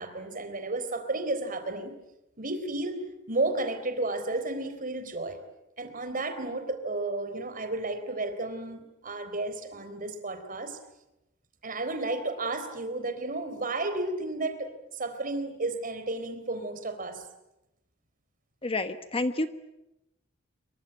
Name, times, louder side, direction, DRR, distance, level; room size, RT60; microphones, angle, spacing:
voice 1, 0.0-1.9 2.4-3.0 3.3-5.4 5.8-10.8 11.6-17.2, right 2 dB, 45° right, 9 dB, 3.9 m, -32 dB
voice 2, 18.6-19.5, left 2 dB, 30° left, 10 dB, 1.2 m, -29 dB
25.5 x 24.0 x 8.9 m, 0.91 s
head